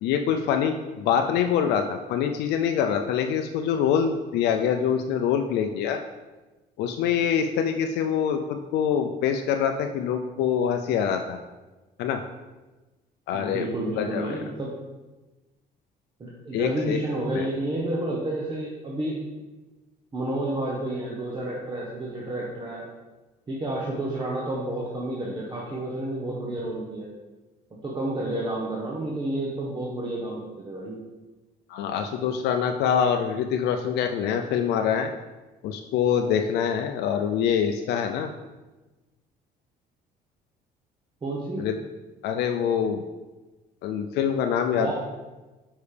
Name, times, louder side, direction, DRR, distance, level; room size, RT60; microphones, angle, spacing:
voice 1, 0.0-6.0 6.8-11.4 12.0-12.2 13.3-13.7 14.0-14.3 16.5-17.0 17.3-17.5 31.7-35.1 35.6-38.3 41.6-41.8 42.2-43.0 43.8-44.9, left 8 dB, 80° left, 5 dB, 0.5 m, -25 dB
voice 2, 13.3-14.7 16.2-19.2 20.1-22.9 23.5-27.1 27.7-31.0 41.2-41.6 44.7-44.9, right 1 dB, 25° right, -4 dB, 1.2 m, -30 dB
6.8 x 5.4 x 3.4 m, 1.2 s
cardioid pair, 110°, 17 cm